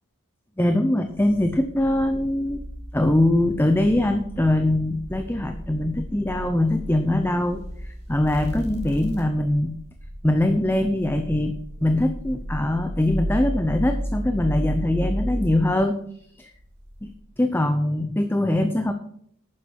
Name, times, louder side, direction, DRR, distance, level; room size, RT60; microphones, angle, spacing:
voice 1, 0.6-2.6 2.9-9.7 10.2-16.0 16.4-16.5 17.0-17.1 17.4-18.9, left 1 dB, 10° left, 7 dB, 0.7 m, -22 dB
sound 1, 1.1-15.6 16.5-17.2, equal, 30° right, 3.3 m, -33 dB
11.5 x 9.4 x 4.7 m, 0.66 s
head